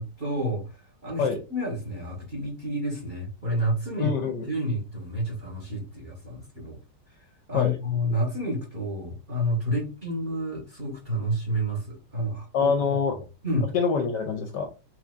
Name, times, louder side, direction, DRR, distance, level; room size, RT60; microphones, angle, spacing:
voice 1, 0.0-4.1 4.5-6.8 7.5-12.7 13.4-13.7, equal, 25° right, -1 dB, 1.3 m, -29 dB
voice 2, 4.0-4.5 7.5-7.7 12.5-13.1 13.7-14.7, left 5 dB, 70° left, 5 dB, 1.1 m, -25 dB
4.5 x 3.8 x 2.5 m, 0.30 s
omnidirectional pair, 2.3 m